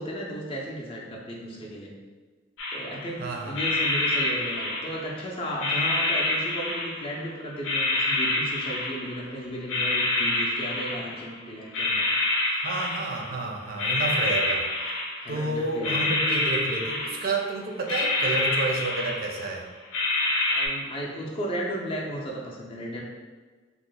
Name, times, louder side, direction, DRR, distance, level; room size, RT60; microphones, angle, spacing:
voice 1, 0.0-1.9 2.7-12.1 15.2-16.1 20.5-23.0, equal, 30° left, -3 dB, 0.4 m, -35 dB
sound 1, 2.6-3.1 3.5-5.2 5.6-7.3 7.6-9.3 9.7-11.4 11.7-13.4 13.8-15.4 15.8-17.5 17.9-19.5 19.9-20.7, left 2 dB, 85° left, 0.6 m, -27 dB
voice 2, 3.2-3.6 12.6-14.7 15.3-19.7, right 3 dB, 50° right, 1 dB, 0.5 m, -30 dB
2.9 x 2.0 x 3.8 m, 1.4 s
head